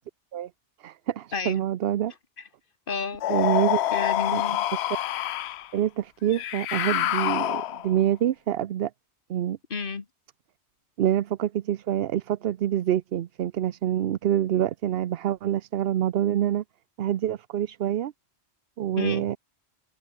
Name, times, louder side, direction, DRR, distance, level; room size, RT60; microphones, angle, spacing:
voice 1, 0.8-2.1 3.3-3.8 4.3-4.4 4.7-4.8 5.7-8.9 9.3-9.6 11.0-16.6 17.0-18.1 18.8-19.4, right 11 dB, 65° right, 0.8 m, -26 dB
voice 2, 2.9-3.2 3.9-4.7 9.7-10.1 19.0-19.2, left 5 dB, 50° left, 1.7 m, -31 dB
sound 1, 3.2-5.7 6.3-8.0, left 13 dB, 75° left, 0.8 m, -26 dB
omnidirectional pair, 1.1 m